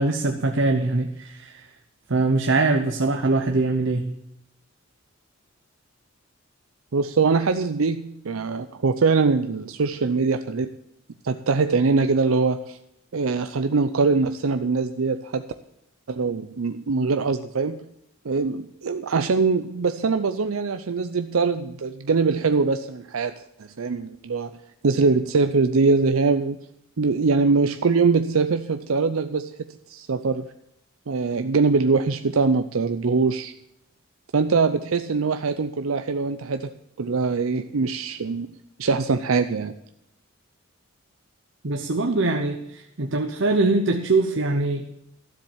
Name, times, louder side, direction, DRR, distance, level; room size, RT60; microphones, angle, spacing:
voice 1, 0.0-1.6 2.1-4.0 41.6-44.9, right 2 dB, 60° right, 5 dB, 0.9 m, -22 dB
voice 2, 6.9-10.7 11.2-12.8 13.1-15.4 16.1-17.8 18.2-23.3 23.8-24.5 24.8-26.6 27.0-30.4 31.1-33.5 34.3-36.7 37.0-38.5 38.8-39.7, right 4 dB, 80° right, 9 dB, 0.6 m, -22 dB
13.0 x 7.5 x 7.2 m, 0.81 s
head